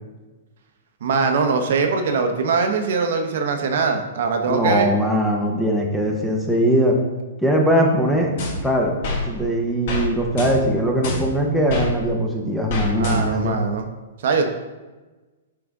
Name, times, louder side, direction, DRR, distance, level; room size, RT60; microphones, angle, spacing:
voice 1, 1.0-4.9 13.0-13.9 14.2-14.5, right 4 dB, 60° right, 5 dB, 0.7 m, -21 dB
voice 2, 4.5-7.0 7.4-8.3 8.6-13.6, equal, ahead, -1 dB, 0.7 m, -20 dB
sound 1, 8.4-9.2 9.9-10.1 10.4-11.9 12.7-13.5, left 2 dB, 45° left, 1.4 m, -27 dB
6.1 x 4.9 x 3.5 m, 1.2 s
hypercardioid pair, 165°, 0 cm